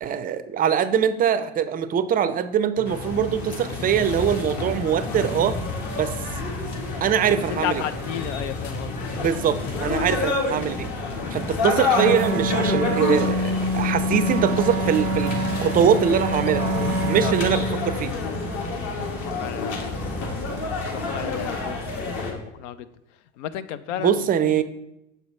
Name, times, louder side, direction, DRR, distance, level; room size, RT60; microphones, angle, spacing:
voice 1, 0.0-5.6 5.9-6.1 7.0-7.8 9.2-10.9 11.3-15.3 15.6-16.7 17.1-18.1 24.0-24.6, right 8 dB, 25° right, 13 dB, 0.4 m, -22 dB
sound 1, 2.8-22.3, left 3 dB, 50° left, 1.6 m, -28 dB
sound 2, 2.8-10.0, left 3 dB, 20° left, 0.6 m, -40 dB
voice 2, 7.5-9.3 17.2-17.3 19.2-22.9 23.4-24.2 24.4-24.6, left 11 dB, 75° left, 14 dB, 0.5 m, -33 dB
Wind instrument woodwind instrument, 11.9-18.0, right 1 dB, 90° right, 0.5 m, -26 dB
6.6 x 4.7 x 4.2 m, 0.85 s
hypercardioid pair, 85°, 36 cm